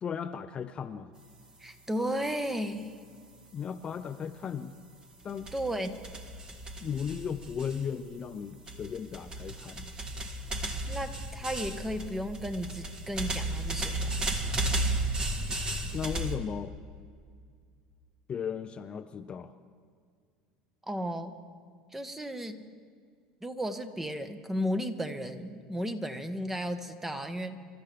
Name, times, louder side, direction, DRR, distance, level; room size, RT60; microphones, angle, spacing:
voice 1, 0.0-1.1 3.5-4.8 5.2-5.5 6.8-9.9 15.9-16.7 18.3-19.5, left 7 dB, 35° left, 9 dB, 0.6 m, -36 dB
voice 2, 1.6-3.0 5.5-6.0 10.9-14.1 20.9-21.3 21.9-22.6 23.4-27.6, equal, 10° right, 8 dB, 1.2 m, -34 dB
sound 1, 5.3-8.2 8.7-16.4, right 2 dB, 25° right, 1.6 m, -34 dB
27.0 x 13.0 x 3.4 m, 2.1 s
supercardioid pair, 95°, 3 cm